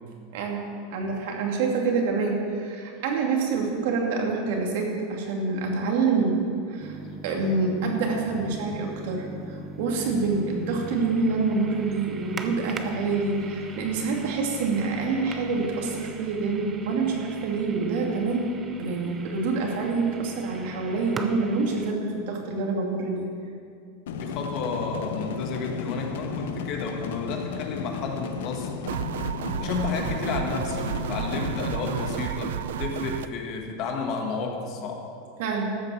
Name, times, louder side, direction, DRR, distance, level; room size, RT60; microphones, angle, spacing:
voice 1, 0.3-23.3 35.4-35.7, right 4 dB, 60° right, 0 dB, 2.5 m, -27 dB
sound 1, 6.8-21.9, right 3 dB, 20° right, 0.7 m, -41 dB
sound 2, 24.1-32.1, left 6 dB, 85° left, 0.9 m, -34 dB
voice 2, 24.1-28.7 29.6-35.1, left 4 dB, 40° left, 2 dB, 1.8 m, -32 dB
sound 3, 28.9-33.3, right 9 dB, 90° right, 0.5 m, -31 dB
13.5 x 8.0 x 7.1 m, 2.4 s
supercardioid pair, 160°, 0 cm